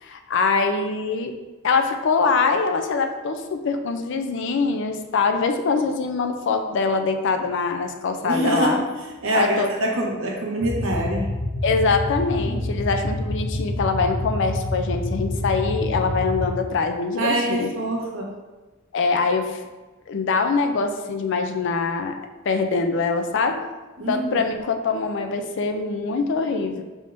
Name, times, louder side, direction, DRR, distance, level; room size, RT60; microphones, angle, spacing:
voice 1, 0.0-1.3 1.6-8.8 9.3-9.7 11.6-17.7 18.9-19.6 20.1-22.2 22.4-23.6 24.1-26.8, left 4 dB, 60° left, 6 dB, 0.4 m, -23 dB
voice 2, 8.2-11.3 12.4-12.6 17.2-18.3 24.0-24.4, right 1 dB, 70° right, -2 dB, 1.0 m, -25 dB
sound 1, 10.6-16.6, left 1 dB, 35° left, 1.0 m, -27 dB
5.5 x 3.5 x 2.6 m, 1.2 s
head